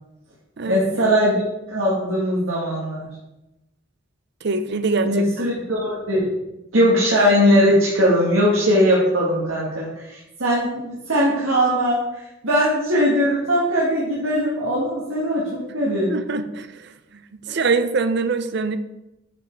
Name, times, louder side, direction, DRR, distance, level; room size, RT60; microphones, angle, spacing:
voice 1, 0.7-1.4 1.7-3.1 5.0-6.2 6.7-16.1 17.5-17.6, equal, 85° right, 1.9 m, -20 dB
voice 2, 4.4-5.1 16.1-16.7 17.3-18.8, right 4 dB, 55° right, 0.6 m, -23 dB
8.8 x 5.3 x 4.6 m
head